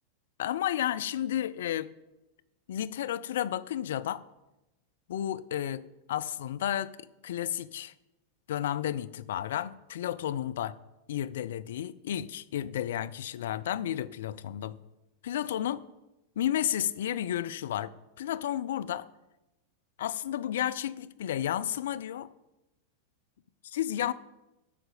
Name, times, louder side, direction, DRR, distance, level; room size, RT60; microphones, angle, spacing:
voice 1, 0.4-1.9 2.7-4.2 5.1-6.9 7.2-7.9 8.5-10.8 11.1-14.7 15.2-15.9 16.4-17.9 18.2-19.1 20.0-22.3 23.7-24.1, left 11 dB, 60° left, 13 dB, 0.4 m, -32 dB
8.3 x 5.9 x 6.7 m, 0.97 s
figure-of-eight pair, 90°, 0 cm